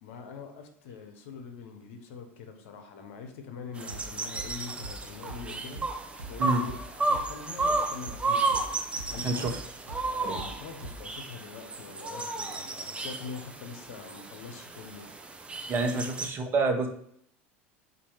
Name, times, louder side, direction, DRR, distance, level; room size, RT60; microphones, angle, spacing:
voice 1, 0.0-5.8 6.3-8.7 9.1-9.5 10.1-15.1 15.9-16.0, left 5 dB, 70° left, 6 dB, 0.8 m, -44 dB
sound 1, 3.8-16.3, right 3 dB, 15° right, 0.6 m, -33 dB
sound 2, 3.9-11.1, right 2 dB, 90° right, 1.0 m, -43 dB
voice 2, 15.7-16.9, right 3 dB, 30° right, 4 dB, 0.9 m, -27 dB
4.2 x 2.6 x 4.6 m, 0.66 s
hypercardioid pair, 85°, 7 cm